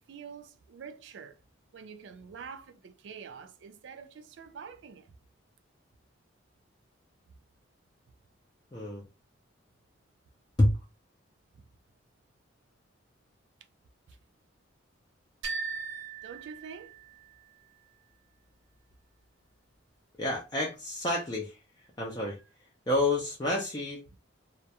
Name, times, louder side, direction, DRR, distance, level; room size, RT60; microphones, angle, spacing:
voice 1, 0.1-1.4 1.7-5.1 9.0-9.1 11.6-11.7 14.1-14.2 16.2-17.0, right 6 dB, 65° right, 0.3 m, -46 dB
voice 2, 8.7-9.0 10.6-10.8 20.2-21.6 22.0-22.4 22.9-24.2, left 1 dB, 20° left, 0.4 m, -29 dB
sound 1, 15.4-17.4, right 5 dB, 85° right, 0.8 m, -38 dB
2.3 x 2.1 x 2.8 m
head